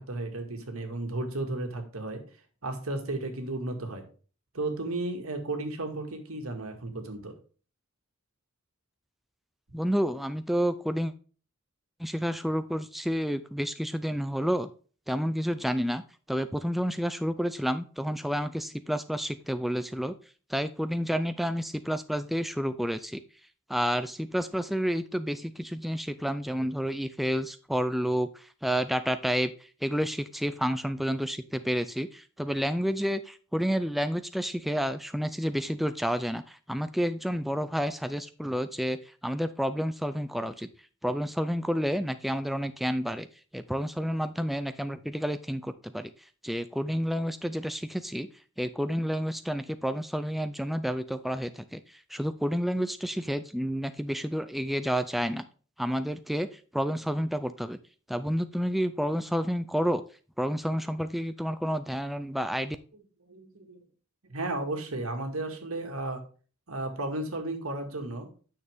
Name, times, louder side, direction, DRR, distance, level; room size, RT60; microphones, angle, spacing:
voice 1, 0.0-2.2 2.6-4.0 4.5-7.3 63.3-63.8 64.3-66.2 66.7-68.3, right 2 dB, 75° right, 5 dB, 1.9 m, -34 dB
voice 2, 9.7-11.1 12.0-14.7 15.1-16.0 16.3-20.1 20.5-23.2 23.7-40.7 41.0-43.3 43.5-48.3 48.6-55.4 55.8-57.8 58.1-60.0 60.4-62.8, equal, ahead, 10 dB, 0.4 m, -30 dB
9.5 x 6.5 x 3.5 m, 0.39 s
head